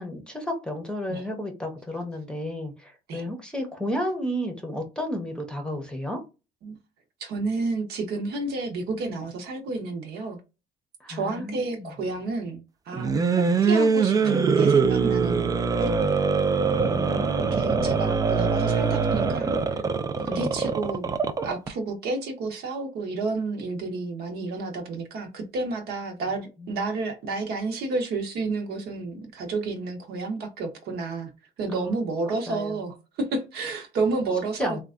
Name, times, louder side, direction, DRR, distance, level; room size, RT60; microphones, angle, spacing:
voice 1, 0.0-6.2 11.0-11.9 16.9-18.0 20.3-20.6 26.6-26.9 31.7-31.9 32.3-32.8 34.6-34.8, left 1 dB, 5° left, 0.8 m, -33 dB
voice 2, 7.2-10.4 11.1-12.6 12.9-13.1 13.6-15.9 17.4-19.8 20.2-21.1 21.4-31.3 31.6-34.8, right 3 dB, 70° right, 1.0 m, -30 dB
sound 1, 12.9-21.7, right 5 dB, 20° right, 0.3 m, -23 dB
3.2 x 2.2 x 2.5 m
cardioid pair, 110°, 17 cm